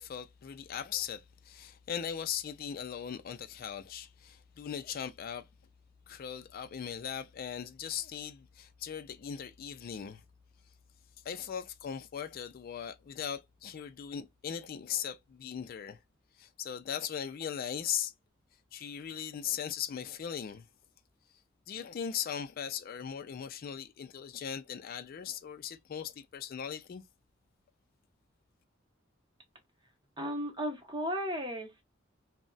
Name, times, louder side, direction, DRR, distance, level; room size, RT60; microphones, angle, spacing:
voice 1, 0.0-5.5 6.1-10.2 11.2-16.0 16.4-18.1 18.7-20.7 21.7-27.0, left 8 dB, 50° left, 0.3 m, -39 dB
voice 2, 30.2-31.8, equal, 25° right, 0.8 m, -35 dB
2.3 x 2.0 x 3.8 m
head